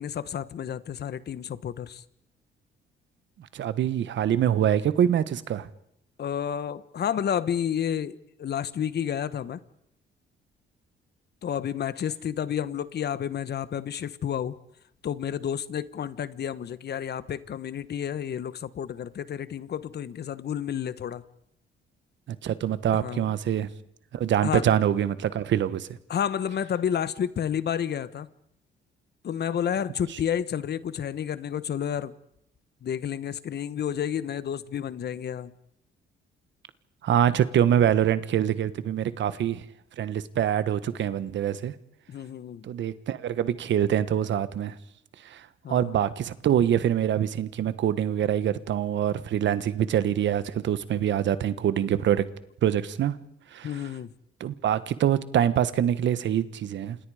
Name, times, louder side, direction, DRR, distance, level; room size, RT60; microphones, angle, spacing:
voice 1, 0.0-2.0 6.2-9.6 11.4-14.6 15.0-21.2 22.9-23.3 24.4-24.6 26.1-28.3 29.2-32.1 32.8-35.5 42.1-42.7 45.6-46.0 53.6-54.1, left 9 dB, 55° left, 1.2 m, -30 dB
voice 2, 3.4-5.7 22.3-23.7 24.1-25.9 37.0-39.6 40.0-41.7 42.6-44.7 45.2-52.2 52.6-53.2 53.5-53.8 54.4-57.0, right 10 dB, 65° right, 1.3 m, -25 dB
29.5 x 27.0 x 5.0 m
cardioid pair, 90°, 20 cm